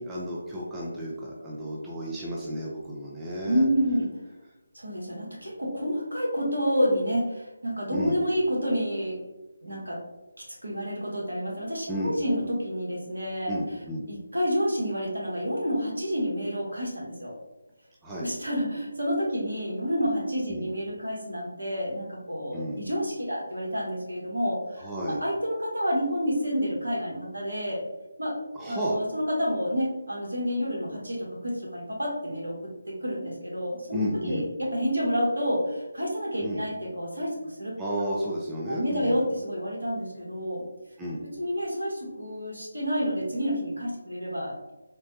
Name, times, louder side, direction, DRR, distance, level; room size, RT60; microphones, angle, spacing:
voice 1, 0.0-3.7 7.9-8.2 11.9-12.1 13.5-14.1 18.0-18.3 20.5-20.7 22.5-22.8 24.8-25.2 28.5-29.0 33.9-34.5 36.4-36.6 37.8-39.3 41.0-41.2, equal, 10° right, -5 dB, 0.4 m, -32 dB
voice 2, 3.4-4.1 4.7-9.2 9.6-10.0 10.4-13.5 14.1-17.3 18.2-27.8 28.2-28.4 28.7-37.7 38.7-40.6 41.4-44.7, equal, 75° right, -3 dB, 1.1 m, -29 dB
3.7 x 2.1 x 2.7 m, 1.0 s
figure-of-eight pair, 155°, 0 cm